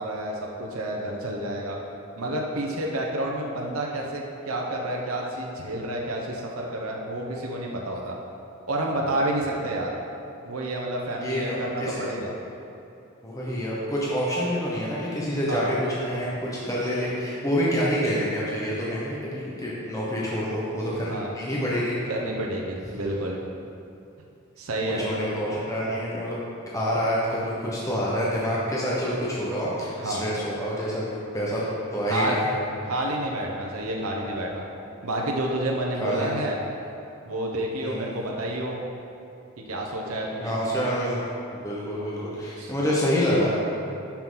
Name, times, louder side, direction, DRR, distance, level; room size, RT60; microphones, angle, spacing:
voice 1, 0.0-1.8 2.2-8.2 8.7-10.0 10.4-12.3 15.5-15.7 21.1-21.3 22.1-23.4 24.6-25.0 30.0-30.2 32.1-32.4 32.8-34.6 35.0-36.6 37.2-38.8 39.7-40.6 42.6-42.7, right 1 dB, 85° right, -1 dB, 1.0 m, -29 dB
voice 2, 11.2-12.2 13.2-22.0 24.8-26.4 26.7-32.5 36.0-36.4 37.8-38.1 40.4-41.2 41.6-43.5, equal, 15° left, -6 dB, 1.2 m, -27 dB
10.5 x 5.9 x 3.9 m, 2.6 s
head